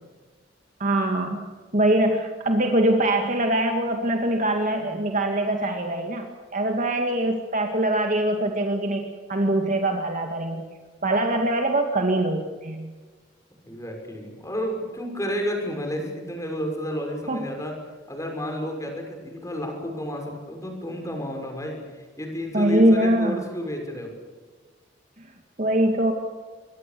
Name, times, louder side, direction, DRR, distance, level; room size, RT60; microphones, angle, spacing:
voice 1, 0.8-1.5 1.7-10.6 11.0-12.9 17.3-17.5 22.5-23.4 25.6-26.1, right 1 dB, 40° right, 3 dB, 2.2 m, -23 dB
voice 2, 13.6-17.7 18.1-21.8 22.2-24.1, equal, 15° left, 3 dB, 6.4 m, -31 dB
25.0 x 22.5 x 7.0 m, 1.4 s
head